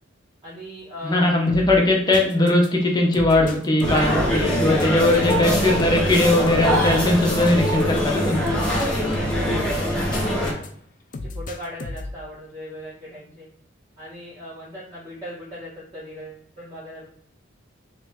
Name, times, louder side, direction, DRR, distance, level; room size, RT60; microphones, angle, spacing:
voice 1, 0.4-1.2 3.8-4.2 4.6-5.8 6.1-6.2 8.6-10.7 11.2-13.5 14.0-17.1, equal, 30° right, -10 dB, 1.4 m, -37 dB
voice 2, 1.0-8.5, left 2 dB, 20° left, -1 dB, 0.8 m, -19 dB
sound 1, 1.5-10.7 11.1-12.2, left 2 dB, 40° left, 0.4 m, -35 dB
sound 2, 3.8-10.5, equal, 5° left, 1.2 m, -23 dB
3.2 x 3.1 x 3.5 m, 0.65 s
head